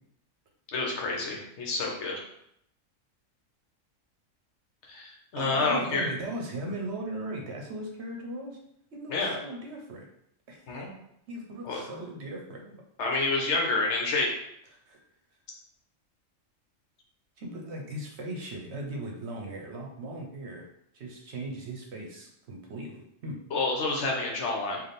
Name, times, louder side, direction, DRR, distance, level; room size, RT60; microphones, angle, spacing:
voice 1, 0.7-2.2 4.9-6.1 9.1-9.3 10.7-10.9 11.6-11.8 13.0-14.3 23.5-24.8, left 3 dB, 65° left, -1 dB, 1.0 m, -28 dB
voice 2, 5.3-8.6 8.9-10.1 10.5-10.8 11.3-12.8 14.7-15.0 17.4-20.7 20.9-23.4, right 1 dB, 60° right, 0 dB, 0.9 m, -38 dB
3.3 x 2.6 x 4.1 m, 0.74 s
omnidirectional pair, 1.3 m